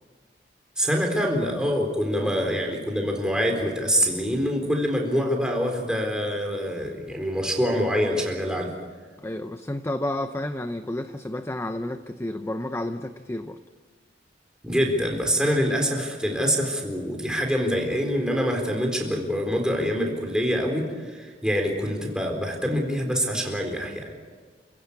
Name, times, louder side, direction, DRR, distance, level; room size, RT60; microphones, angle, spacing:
voice 1, 0.8-8.7 14.6-24.1, equal, 5° right, 1 dB, 4.1 m, -25 dB
voice 2, 9.2-13.6, left 1 dB, 15° left, 8 dB, 0.6 m, -31 dB
29.0 x 16.0 x 8.3 m, 1.5 s
head